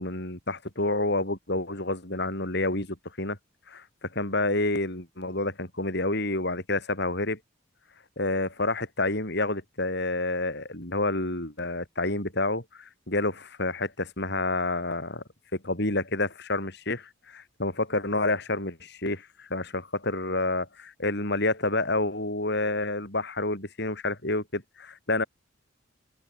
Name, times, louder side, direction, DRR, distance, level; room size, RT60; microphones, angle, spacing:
voice 1, 0.0-3.4 3.7-7.4 8.2-15.2 15.5-25.2, left 2 dB, 55° left, 6.8 m, -29 dB
head